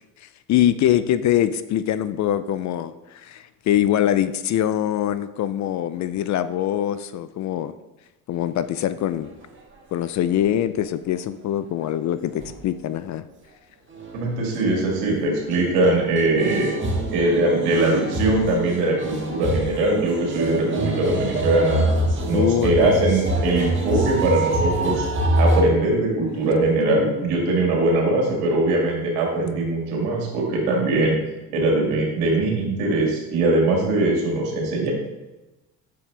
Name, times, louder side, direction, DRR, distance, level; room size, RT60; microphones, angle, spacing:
voice 1, 0.2-7.7 8.3-9.3 9.9-13.2 22.3-23.0, left 11 dB, 45° left, 14 dB, 0.4 m, -23 dB
sound 1, 12.4-12.5 14.0-14.2 14.5-14.6 16.3-25.6, right 2 dB, 30° right, 1.6 m, -24 dB
voice 2, 14.1-16.7 17.1-21.8 22.3-25.0 25.4-31.2 31.5-34.9, right 2 dB, 80° right, -2 dB, 2.2 m, -21 dB
7.0 x 4.8 x 3.4 m, 1.0 s
supercardioid pair, 75°, 41 cm